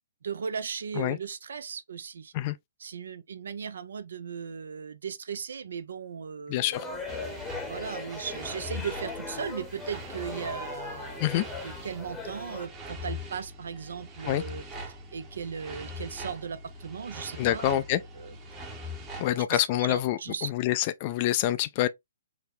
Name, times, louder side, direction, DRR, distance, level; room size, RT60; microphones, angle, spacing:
voice 1, 0.2-2.3 2.8-7.1 7.7-14.6 15.1-18.4 19.2-20.5, right 6 dB, 70° right, 0.4 m, -37 dB
voice 2, 6.5-6.9 11.2-11.4 14.3-14.4 17.4-18.0 19.2-21.9, left 13 dB, 35° left, 0.3 m, -26 dB
sound 1, 6.7-12.7, left 3 dB, 10° left, 0.8 m, -39 dB
sound 2, 7.1-19.4, left 1 dB, 20° right, 0.8 m, -42 dB
3.9 x 2.1 x 2.6 m
hypercardioid pair, 130°, 0 cm